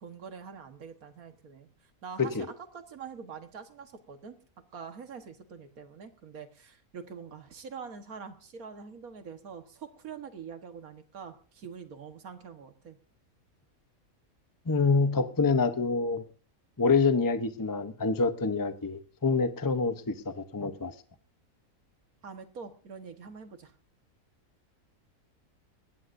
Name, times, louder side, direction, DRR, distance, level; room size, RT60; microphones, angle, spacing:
voice 1, 0.0-1.7 2.0-2.5 2.7-4.4 4.7-13.0 22.2-23.7, right 6 dB, 90° right, 7 dB, 1.9 m, -44 dB
voice 2, 14.7-16.2 16.8-20.9, left 4 dB, 20° left, 9 dB, 0.7 m, -26 dB
21.0 x 16.5 x 2.6 m, 0.38 s
omnidirectional pair, 1.5 m